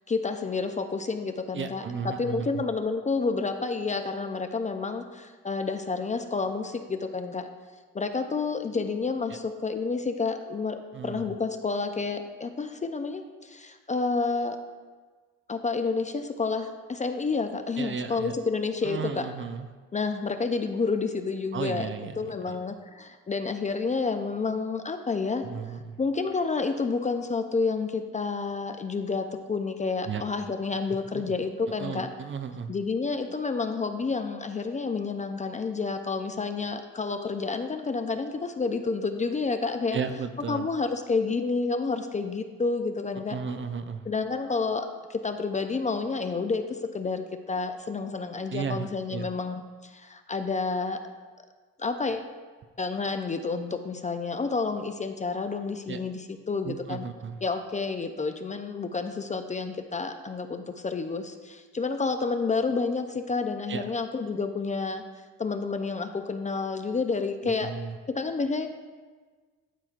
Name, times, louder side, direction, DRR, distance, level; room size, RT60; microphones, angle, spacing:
voice 1, 0.1-7.5 7.9-10.8 11.0-14.6 15.5-19.3 19.9-21.9 22.2-25.5 26.0-32.1 32.7-40.0 40.5-43.4 44.1-51.0 51.8-52.3 52.8-57.1 57.4-65.0 65.4-67.7 68.1-68.7, left 4 dB, 20° left, 7 dB, 0.4 m, -29 dB
voice 2, 1.5-2.6 9.3-9.4 10.9-11.3 17.8-18.4 18.8-19.7 21.5-22.6 25.4-26.0 30.1-30.2 31.1-31.2 31.8-32.7 39.9-40.7 43.3-44.1 48.5-49.3 55.9-56.0 56.6-57.4 63.7-63.8 67.4-67.9, right 6 dB, 40° right, 9 dB, 0.5 m, -34 dB
12.0 x 4.3 x 2.4 m, 1.4 s
supercardioid pair, 75°, 33 cm